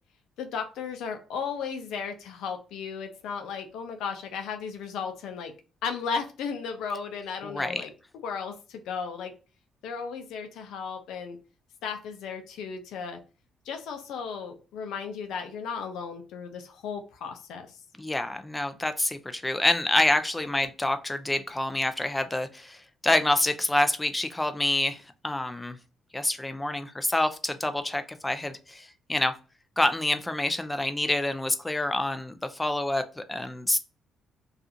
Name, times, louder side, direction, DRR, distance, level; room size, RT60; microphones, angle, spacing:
voice 1, 0.4-5.5 5.8-7.9 8.2-9.3 9.8-11.4 11.8-13.2 13.7-17.8, left 6 dB, 80° left, 5 dB, 0.5 m, -35 dB
voice 2, 7.4-7.8 18.0-25.8 26.1-29.3 29.8-33.8, left 1 dB, 15° left, 9 dB, 0.4 m, -27 dB
2.4 x 2.4 x 2.7 m, 0.34 s
cardioid pair, 75°, 0 cm